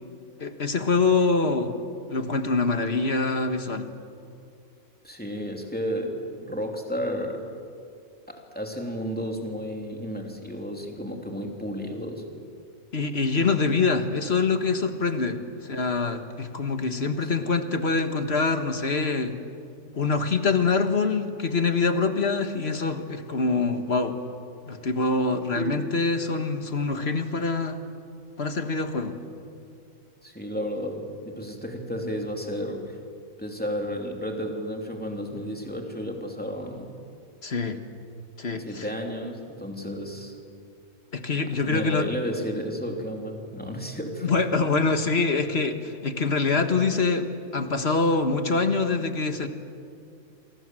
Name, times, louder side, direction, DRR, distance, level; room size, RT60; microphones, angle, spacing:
voice 1, 0.4-1.8 2.1-3.9 12.9-15.4 15.6-19.4 20.0-24.2 24.7-27.8 28.4-29.2 37.4-37.8 38.4-38.9 41.1-42.1 44.2-49.5, left 4 dB, 50° left, 7 dB, 1.8 m, -25 dB
voice 2, 5.0-6.1 6.4-7.4 8.3-12.3 17.2-17.3 25.5-25.9 30.2-33.0 33.4-36.9 38.6-40.3 41.6-44.4 46.7-46.8, equal, 5° left, 2 dB, 3.0 m, -32 dB
29.5 x 24.5 x 7.7 m, 2.5 s
omnidirectional pair, 1.4 m